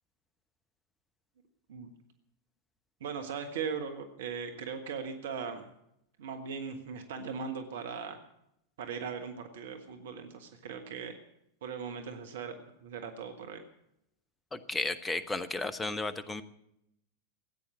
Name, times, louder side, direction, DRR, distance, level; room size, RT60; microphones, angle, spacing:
voice 1, 3.0-5.7 6.2-8.2 8.8-11.1 11.6-12.5 12.8-13.6, right 6 dB, 60° right, 6 dB, 1.5 m, -39 dB
voice 2, 14.5-16.4, left 2 dB, 15° left, 13 dB, 1.0 m, -34 dB
16.0 x 9.2 x 8.4 m, 0.79 s
figure-of-eight pair, 90°, 0 cm